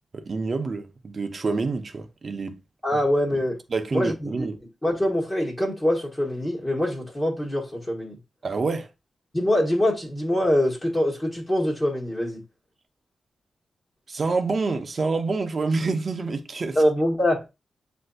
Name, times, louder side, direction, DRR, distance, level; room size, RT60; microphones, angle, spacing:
voice 1, 0.1-2.6 3.7-4.6 8.4-8.9 14.1-16.8, right 3 dB, 45° right, 0.6 m, -27 dB
voice 2, 2.8-3.6 3.9-4.5 4.8-8.2 9.3-12.4 16.7-17.4, left 1 dB, 20° left, 1.1 m, -24 dB
7.5 x 2.6 x 2.2 m
wide cardioid pair, 115°, 0 cm